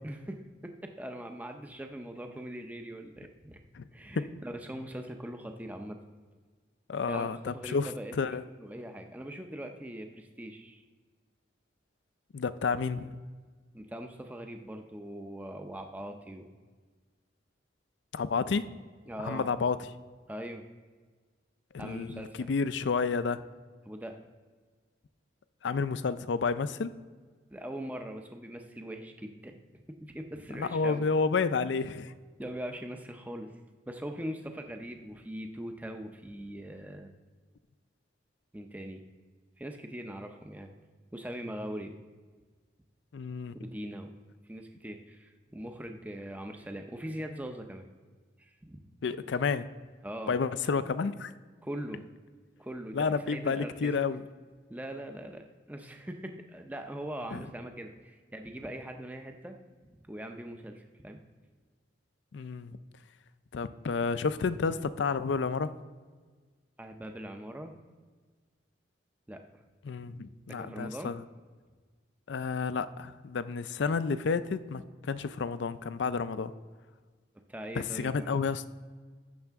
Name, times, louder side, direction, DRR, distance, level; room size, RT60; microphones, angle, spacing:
voice 1, 0.0-3.6 3.9-6.0 7.1-7.3 7.5-10.8 13.7-16.5 19.1-19.5 20.3-20.6 21.8-22.5 23.8-24.2 27.5-29.6 29.9-31.1 32.4-33.5 33.9-37.1 38.5-39.0 39.6-40.7 41.1-42.0 43.6-44.1 44.5-47.9 48.4-48.9 50.0-50.4 51.6-52.0 52.6-53.9 54.7-55.4 55.7-59.6 59.9-61.2 66.8-67.7 69.3-69.4 70.5-71.1 77.5-78.4, right 1 dB, 10° right, 5 dB, 0.5 m, -41 dB
voice 2, 6.9-7.9 8.2-8.4 12.3-13.2 18.1-18.7 19.2-19.8 21.7-23.4 25.6-26.9 30.5-32.1 43.1-43.6 49.0-49.7 50.3-51.3 52.9-54.2 57.3-57.4 62.3-62.8 63.5-65.7 69.8-71.2 72.3-76.5 77.8-78.7, left 5 dB, 75° left, 13 dB, 0.4 m, -30 dB
14.5 x 6.6 x 3.5 m, 1.5 s
head